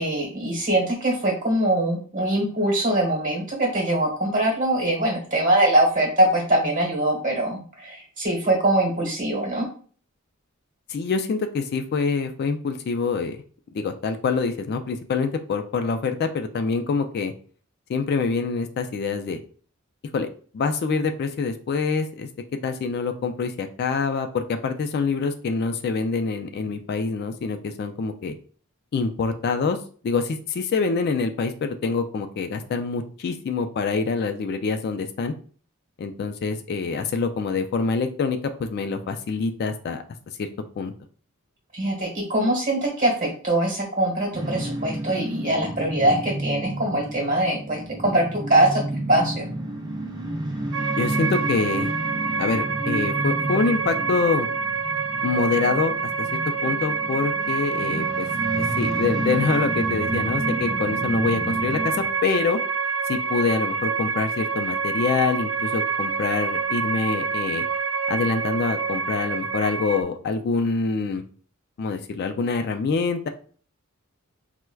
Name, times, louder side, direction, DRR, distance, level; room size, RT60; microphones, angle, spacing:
voice 1, 0.0-9.6 41.7-48.8 49.1-49.5, right 1 dB, 40° right, -1 dB, 1.2 m, -22 dB
voice 2, 10.9-13.4 13.7-17.3 17.9-19.4 20.1-20.3 20.5-22.3 22.6-28.4 28.9-29.8 30.0-35.3 36.0-40.0 40.4-40.5 40.8-40.9 51.0-51.9 52.4-54.5 55.2-58.3 58.6-62.6 63.1-67.7 68.1-71.2 71.8-73.3, left 4 dB, 50° left, 7 dB, 0.3 m, -25 dB
sound 1, 44.3-62.1, right 2 dB, 20° right, 0.5 m, -31 dB
sound 2, 50.7-70.0, right 5 dB, 80° right, 0.5 m, -27 dB
4.4 x 2.1 x 2.2 m, 0.43 s
head